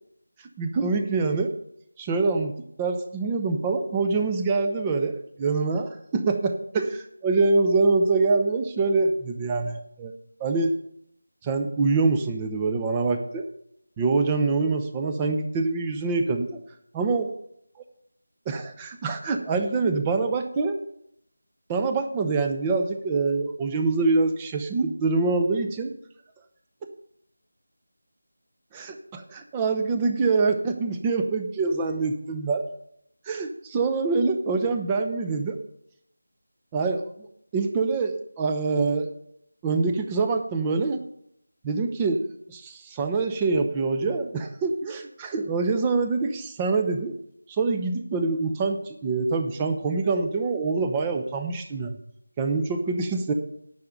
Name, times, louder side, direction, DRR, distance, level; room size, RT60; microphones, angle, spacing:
voice 1, 0.6-1.5 2.0-2.5 2.8-10.1 10.4-10.8 11.4-13.5 14.0-16.6 16.9-17.3 18.5-20.7 21.7-25.9 28.7-32.6 33.3-35.6 36.7-37.3 37.5-39.1 39.6-41.0 41.6-42.2 42.5-47.1 47.5-52.0 52.4-53.3, right 3 dB, 15° right, 5 dB, 0.7 m, -25 dB
10.5 x 5.8 x 7.9 m, 0.75 s
figure-of-eight pair, 170°, 0 cm